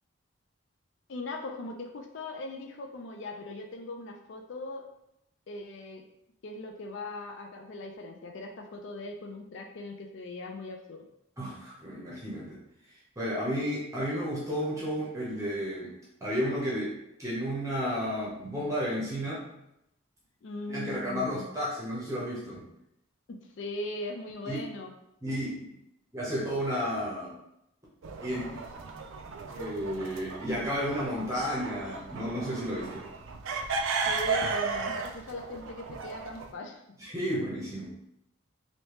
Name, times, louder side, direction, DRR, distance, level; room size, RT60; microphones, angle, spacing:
voice 1, 1.1-4.8 5.5-6.0 6.4-11.1 20.4-21.5 23.3-24.9 34.1-36.8, left 2 dB, 60° left, 3 dB, 0.4 m, -39 dB
voice 2, 11.4-12.6 13.2-15.9 16.2-19.4 20.7-22.6 24.4-24.6 25.2-25.5 26.1-27.3 28.2-28.5 29.5-33.0 37.0-37.9, equal, 15° right, -6 dB, 0.8 m, -32 dB
sound 1, 28.0-36.5, right 4 dB, 70° right, 0.4 m, -35 dB
3.3 x 2.7 x 3.1 m, 0.82 s
head